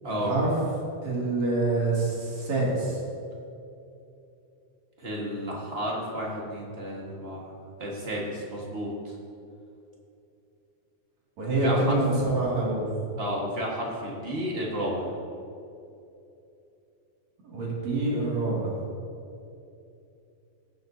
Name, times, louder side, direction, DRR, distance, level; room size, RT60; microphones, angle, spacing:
voice 1, 0.1-0.5 1.0-3.0 11.4-12.9 17.4-18.7, right 2 dB, 65° right, -5 dB, 3.5 m, -26 dB
voice 2, 5.0-9.1 11.6-12.0 13.2-15.1, equal, 40° right, -3 dB, 0.9 m, -32 dB
17.5 x 7.7 x 2.7 m, 2.7 s
omnidirectional pair, 3.4 m